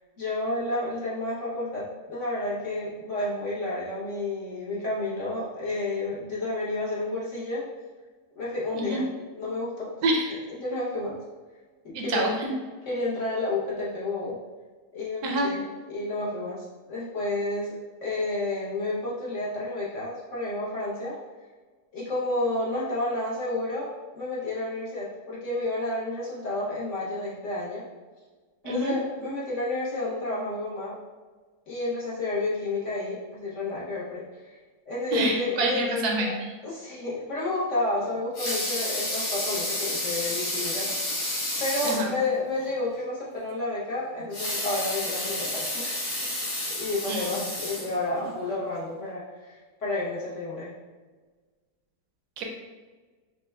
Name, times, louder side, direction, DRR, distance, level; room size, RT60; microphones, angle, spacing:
voice 1, 0.2-7.7 8.3-9.1 9.3-9.9 10.5-11.2 11.8-12.3 12.9-14.4 14.9-21.2 21.9-27.9 28.6-31.0 31.7-34.6 34.8-36.3 36.6-40.9 41.6-45.9 46.2-46.3 46.7-50.7, left 2 dB, 55° left, -7 dB, 0.9 m, -31 dB
voice 2, 11.9-12.5 15.2-15.5 28.6-28.9 35.1-36.3 41.8-42.1 47.1-47.3 52.4-52.5, right 2 dB, 75° right, 1 dB, 1.0 m, -27 dB
Water tap faucet / Sink (filling or washing) / Liquid, 38.1-42.1 42.6-42.7 43.0-43.1 44.2-48.3 48.9-49.0, left 1 dB, 80° left, 2.3 m, -31 dB
5.9 x 2.2 x 2.2 m, 1.4 s
omnidirectional pair, 1.8 m